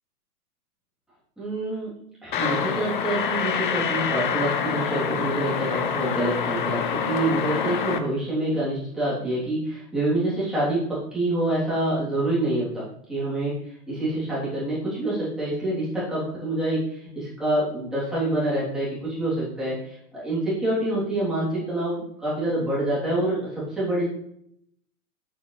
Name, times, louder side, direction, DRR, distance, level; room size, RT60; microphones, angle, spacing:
voice 1, 1.4-1.9 2.2-24.1, right 1 dB, ahead, -10 dB, 3.2 m, -26 dB
sound 1, 2.3-8.0, left 7 dB, 35° left, 0.6 m, -26 dB
8.5 x 7.8 x 3.3 m, 0.70 s
hypercardioid pair, 165°, 46 cm